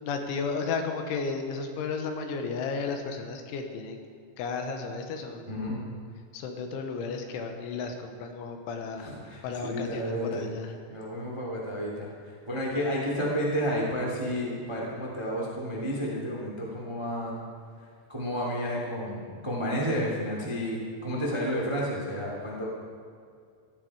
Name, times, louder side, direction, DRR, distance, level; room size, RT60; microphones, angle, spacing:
voice 1, 0.0-4.0 4.4-6.0 6.3-9.1 9.4-10.7, left 4 dB, 85° left, 5 dB, 3.6 m, -33 dB
voice 2, 5.5-5.8 9.0-10.5 10.9-17.4 18.1-22.7, equal, 10° right, -3 dB, 1.2 m, -31 dB
15.5 x 13.5 x 4.9 m, 2.2 s
omnidirectional pair, 5.4 m